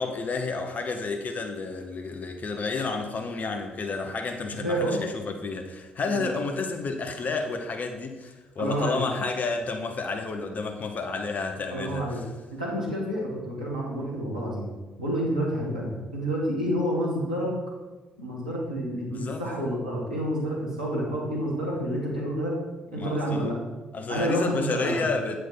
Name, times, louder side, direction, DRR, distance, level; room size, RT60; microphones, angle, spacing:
voice 1, 0.0-12.2 19.1-19.4 23.0-23.5 23.9-25.4, left 4 dB, 40° left, 5 dB, 0.8 m, -31 dB
voice 2, 4.6-5.0 6.1-6.3 8.6-9.0 11.7-12.2 12.5-14.7 15.0-17.5 18.2-22.6 22.9-23.6 24.1-25.1, equal, 85° right, -5 dB, 1.8 m, -29 dB
8.1 x 6.4 x 4.4 m, 1.2 s
figure-of-eight pair, 40°, 4 cm